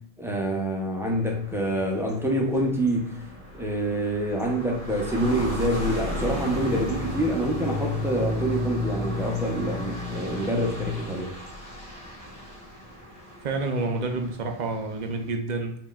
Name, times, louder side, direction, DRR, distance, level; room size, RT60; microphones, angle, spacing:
voice 1, 0.0-3.2 3.5-11.3, right 1 dB, 5° right, 0.5 m, -26 dB
sound 1, 1.0-15.3, left 1 dB, 85° left, 1.7 m, -34 dB
voice 2, 13.4-15.8, right 3 dB, 55° right, 0.5 m, -29 dB
4.5 x 3.0 x 2.3 m
omnidirectional pair, 1.0 m